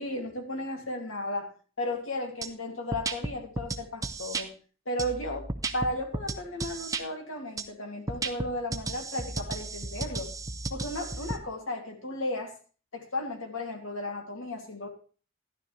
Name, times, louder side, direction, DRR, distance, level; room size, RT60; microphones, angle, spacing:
voice 1, 0.0-4.5 4.9-5.5 5.7-10.3 10.7-12.5 12.9-14.9, left 1 dB, 75° left, 2 dB, 2.7 m, -34 dB
sound 1, 2.4-2.5 2.9-4.4 5.0-7.0 7.6-7.7 8.1-11.4, right 3 dB, 15° right, 0.7 m, -34 dB
12.5 x 12.0 x 3.3 m, 0.38 s
head